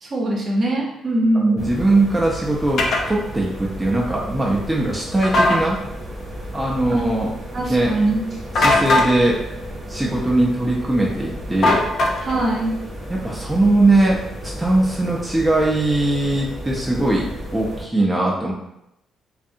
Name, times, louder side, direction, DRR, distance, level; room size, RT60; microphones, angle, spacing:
voice 1, 0.0-1.6 6.9-7.0 7.5-8.2 12.2-12.8, right 1 dB, 45° right, -2 dB, 0.7 m, -21 dB
voice 2, 1.5-5.8 6.5-7.3 7.7-7.9 8.6-9.4 9.9-11.9 13.1-17.3 17.5-18.5, right 2 dB, 10° right, -4 dB, 0.4 m, -20 dB
sound 1, 1.6-17.9, equal, 25° right, 1.0 m, -33 dB
sound 2, 2.8-3.0 5.2-5.6 8.5-9.1 11.6-12.4, left 2 dB, 60° left, 0.4 m, -18 dB
2.5 x 2.4 x 2.6 m, 0.85 s
cardioid pair, 90°, 0 cm